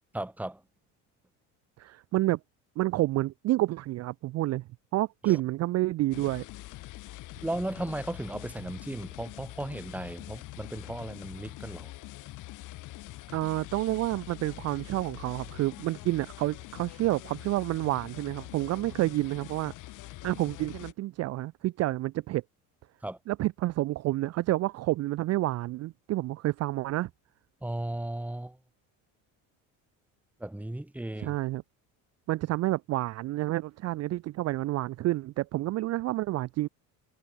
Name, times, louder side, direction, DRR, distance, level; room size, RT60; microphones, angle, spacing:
voice 1, 0.1-0.6 5.3-5.4 7.4-11.9 23.0-23.2 27.6-28.6 30.4-31.3, right 1 dB, 5° right, 1.2 m, -36 dB
voice 2, 1.8-2.4 2.8-4.6 4.9-6.4 13.3-19.7 20.2-22.4 23.3-27.1 31.2-31.6 32.3-36.7, right 17 dB, 45° right, 0.4 m, -29 dB
sound 1, 6.1-20.9, left 18 dB, 55° left, 0.7 m, -44 dB
supercardioid pair, 105°, 38 cm